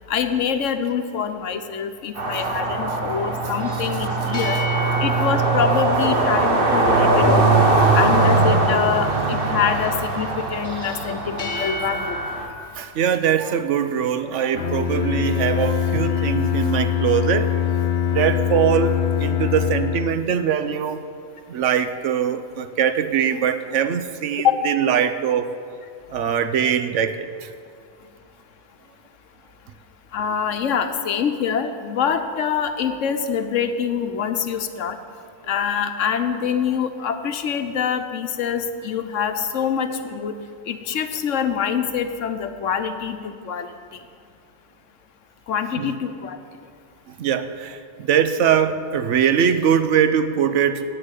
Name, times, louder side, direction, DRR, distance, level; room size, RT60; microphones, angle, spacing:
voice 1, 0.1-4.6 5.0-7.6 7.9-12.2 24.4-24.6 30.1-35.0 35.5-40.3 40.7-44.0 45.5-46.4, left 7 dB, 80° left, 8 dB, 1.2 m, -25 dB
sound 1, 2.2-12.5, right 2 dB, 50° right, 1.4 m, -21 dB
sound 2, 3.6-7.1 10.6-12.4, left 2 dB, 45° left, 1.8 m, -33 dB
voice 2, 12.7-17.5 18.1-18.9 19.2-21.0 21.5-25.5 26.1-27.5 45.7-46.0 47.1-50.8, right 8 dB, 80° right, 10 dB, 1.0 m, -22 dB
Bowed string instrument, 14.5-20.4, left 9 dB, 65° left, 0.9 m, -23 dB
9.8 x 8.6 x 8.2 m, 2.4 s
omnidirectional pair, 1.3 m